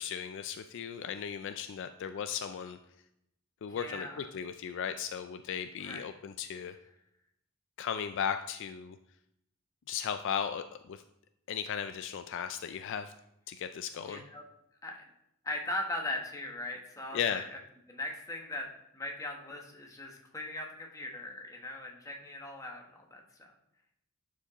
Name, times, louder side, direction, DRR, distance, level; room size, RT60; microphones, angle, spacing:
voice 1, 0.0-2.8 3.6-6.7 7.8-9.0 9.9-11.0 11.5-13.1 13.5-14.2 17.1-17.4, left 8 dB, 60° left, 9 dB, 0.3 m, -36 dB
voice 2, 3.7-4.2 5.8-6.1 14.1-14.4 14.8-15.0 15.4-17.6 17.9-18.7 18.9-23.5, left 1 dB, 15° left, 1 dB, 1.0 m, -39 dB
11.0 x 4.7 x 3.0 m, 0.80 s
head